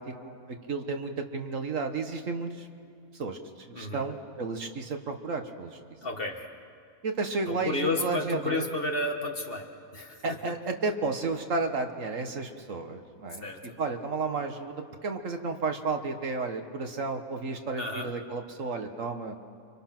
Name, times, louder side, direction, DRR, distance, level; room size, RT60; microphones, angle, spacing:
voice 1, 0.0-2.7 3.1-5.8 7.0-8.6 10.2-13.4 13.8-19.4, right 3 dB, 60° right, 5 dB, 1.7 m, -32 dB
voice 2, 3.7-4.1 6.0-6.4 7.5-10.4 13.3-13.8 17.8-18.1, left 2 dB, 40° left, 3 dB, 1.8 m, -32 dB
29.5 x 25.0 x 6.0 m, 2.4 s
omnidirectional pair, 1.6 m